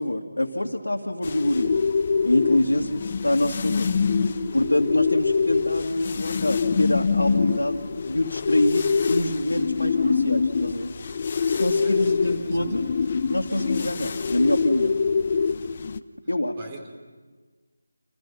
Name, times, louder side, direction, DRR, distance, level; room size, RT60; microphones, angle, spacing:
voice 1, 0.0-1.8 2.2-3.9 4.5-10.9 11.4-12.8 13.3-15.0 16.3-16.6, left 1 dB, 85° left, -2 dB, 2.6 m, -25 dB
sound 1, 1.2-16.0, left 5 dB, 35° left, 0.8 m, -25 dB
voice 2, 11.8-12.6 16.6-16.9, right 2 dB, 25° right, 4 dB, 3.6 m, -44 dB
29.0 x 29.0 x 5.9 m, 1.4 s
figure-of-eight pair, 165°, 0 cm